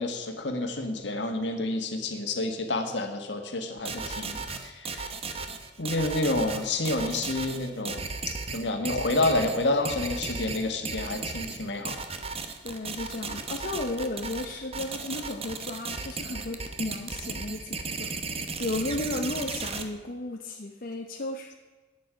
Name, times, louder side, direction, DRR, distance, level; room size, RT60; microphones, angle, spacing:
voice 1, 0.0-5.1 5.8-8.0 8.5-12.0, left 2 dB, 70° left, 5 dB, 1.6 m, -29 dB
sound 1, 3.8-19.8, right 4 dB, 35° right, 0.9 m, -35 dB
voice 2, 12.6-18.1 18.6-21.5, left 2 dB, 50° left, 2 dB, 0.8 m, -34 dB
12.0 x 9.2 x 5.1 m, 1.3 s
head